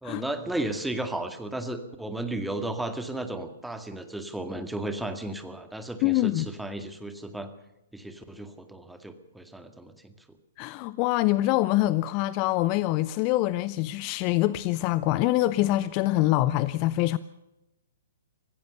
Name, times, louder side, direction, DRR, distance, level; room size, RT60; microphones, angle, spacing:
voice 1, 0.0-7.5 7.9-10.1, right 1 dB, 5° right, 2.0 m, -34 dB
voice 2, 6.0-6.5 10.6-17.2, left 16 dB, 35° left, 0.6 m, -25 dB
25.0 x 15.5 x 6.9 m
figure-of-eight pair, 120°, 0 cm